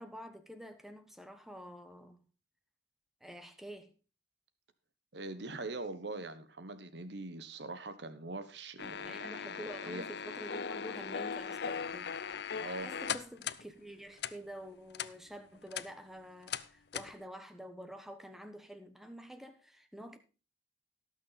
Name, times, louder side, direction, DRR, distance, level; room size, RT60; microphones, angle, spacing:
voice 1, 0.0-2.3 3.2-3.9 9.0-12.2 12.8-20.2, equal, ahead, 1.1 m, -48 dB
voice 2, 5.1-9.2 9.6-10.1 12.6-12.9, right 2 dB, 65° right, 1.2 m, -42 dB
sound 1, 8.8-13.6 14.2-14.3 14.9-15.1 15.6-15.9 16.5-16.6 16.9-17.1, left 7 dB, 60° left, 0.6 m, -39 dB
18.0 x 6.4 x 4.1 m
head